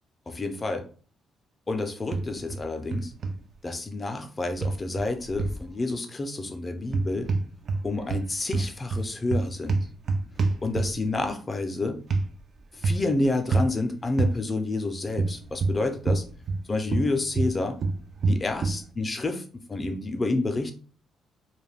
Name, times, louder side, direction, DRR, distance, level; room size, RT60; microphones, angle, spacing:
voice 1, 0.3-0.9 1.7-3.1 3.6-7.3 7.8-9.9 10.6-12.0 12.7-16.2 16.7-17.8 18.3-20.7, left 2 dB, 30° left, 0.5 m, -29 dB
sound 1, 2.1-2.6 2.9-3.4 4.6-5.6 6.8-7.8 8.1-11.1 12.1-12.3 12.8-13.1 13.5-13.7 14.2-14.4 15.2-16.6 16.9-18.8, right 3 dB, 50° right, 0.4 m, -26 dB
2.3 x 2.1 x 3.3 m
cardioid pair, 90°, 0 cm